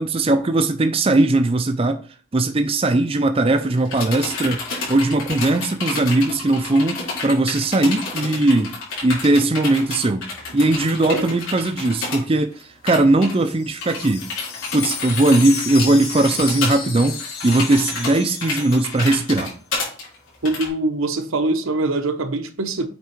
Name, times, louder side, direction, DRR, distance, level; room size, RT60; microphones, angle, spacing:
voice 1, 0.0-2.0 2.3-4.6 4.9-8.7 9.0-10.2 10.5-14.3 14.7-19.5, right 2 dB, 25° right, 0.4 m, -19 dB
sound 1, 3.6-12.2 12.5-12.6 12.9-13.3 13.8-20.7, left 3 dB, 80° left, 3.6 m, -30 dB
Wind chime, 13.2-19.4, left 6 dB, 50° left, 1.3 m, -32 dB
voice 2, 20.4-22.9, right 2 dB, 80° right, 0.9 m, -23 dB
8.3 x 3.6 x 4.5 m
head